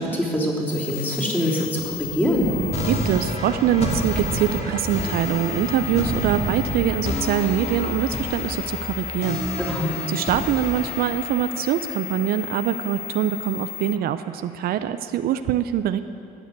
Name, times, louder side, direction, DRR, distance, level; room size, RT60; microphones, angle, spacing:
voice 1, 0.0-2.5 9.6-9.9, equal, 10° left, -4 dB, 3.3 m, -24 dB
sound 1, 0.7-14.0, left 13 dB, 65° left, 1.0 m, -35 dB
Thunder, 2.3-7.4, right 4 dB, 90° right, 2.2 m, -31 dB
sound 2, 2.7-13.7, left 1 dB, 40° left, 2.4 m, -31 dB
voice 2, 2.9-9.6 10.1-16.0, right 10 dB, 65° right, 10 dB, 0.5 m, -24 dB
14.0 x 9.1 x 8.0 m, 2.7 s
cardioid pair, 110°, 17 cm